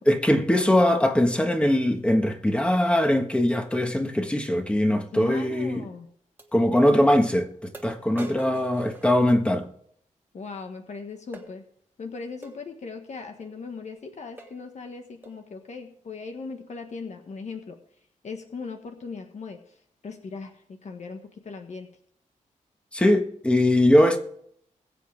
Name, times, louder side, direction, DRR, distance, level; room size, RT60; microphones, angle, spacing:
voice 1, 0.1-5.8 6.5-9.7 22.9-24.2, left 1 dB, 10° left, 1.5 m, -21 dB
voice 2, 5.1-6.1 8.4-8.6 10.3-11.6 12.0-17.8 18.2-21.9, left 4 dB, 60° left, 1.4 m, -39 dB
sound 1, 5.4-5.5 6.4-6.5 7.2-7.3 7.7-9.7 11.3-11.5 12.4-12.6 13.4-13.6 14.0-14.1 14.4-14.7 15.2-15.5, right 2 dB, 15° right, 1.5 m, -44 dB
21.0 x 8.2 x 3.5 m
wide cardioid pair, 145°, 13 cm